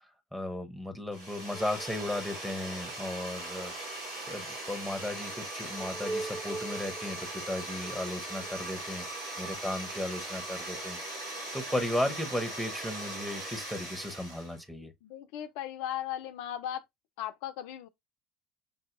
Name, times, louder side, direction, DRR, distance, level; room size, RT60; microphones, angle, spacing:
voice 1, 0.3-3.7 4.3-9.0 9.4-11.0 11.5-14.9, left 1 dB, 5° right, 1.1 m, -35 dB
sound 1, 1.1-14.6, right 1 dB, 75° right, 2.5 m, -40 dB
sound 2, 1.5-10.3, right 2 dB, 25° right, 1.4 m, -45 dB
voice 2, 15.0-16.8 17.2-17.9, left 11 dB, 65° left, 0.3 m, -37 dB
5.9 x 2.7 x 2.4 m
figure-of-eight pair, 60°, 0 cm